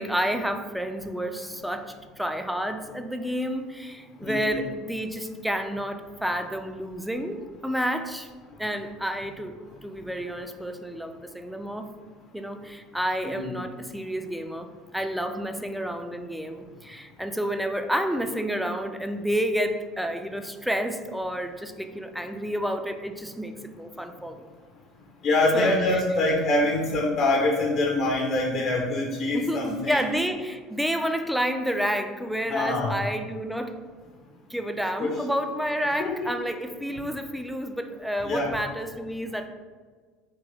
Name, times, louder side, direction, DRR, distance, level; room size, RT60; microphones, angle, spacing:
voice 1, 0.0-8.3 8.6-11.9 12.3-24.5 25.5-26.0 29.3-33.8 34.5-39.5, equal, ahead, 6 dB, 0.4 m, -30 dB
voice 2, 4.2-4.6 13.2-13.6 25.2-30.0 32.5-32.9 35.0-35.1 36.0-36.3 38.2-38.5, left 2 dB, 50° left, -1 dB, 0.6 m, -25 dB
3.7 x 2.8 x 3.3 m, 1.5 s
figure-of-eight pair, 65°, 0 cm